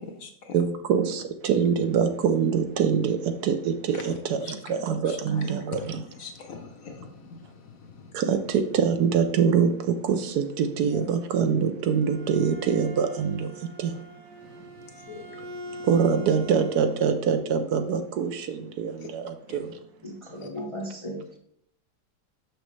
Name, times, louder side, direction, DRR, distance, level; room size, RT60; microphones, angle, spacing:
voice 1, 0.0-0.5 4.4-4.5 4.9-5.8 6.2-8.1 10.9-11.0 14.4-15.9 19.0-19.1 19.5-19.6 20.4-20.5, left 5 dB, 60° left, 4 dB, 1.2 m, -43 dB
voice 2, 0.5-6.1 8.1-14.0 15.8-19.8, right 7 dB, 70° right, 8 dB, 1.1 m, -24 dB
Bowed string instrument, 11.7-17.2, equal, 90° right, 1.9 m, -43 dB
voice 3, 20.0-21.4, equal, 30° left, 0 dB, 0.6 m, -36 dB
6.3 x 6.2 x 3.2 m, 0.67 s
omnidirectional pair, 1.8 m